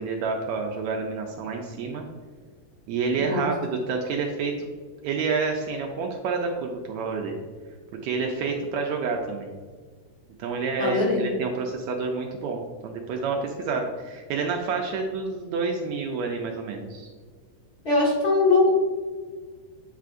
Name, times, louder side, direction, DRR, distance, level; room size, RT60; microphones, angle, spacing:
voice 1, 0.0-2.1 2.9-4.7 5.0-7.4 8.0-9.5 10.4-17.1, right 4 dB, 80° right, 1 dB, 1.7 m, -29 dB
voice 2, 10.8-11.3 17.8-18.7, left 3 dB, 40° left, -6 dB, 1.6 m, -21 dB
8.3 x 4.6 x 2.5 m, 1.5 s
omnidirectional pair, 3.5 m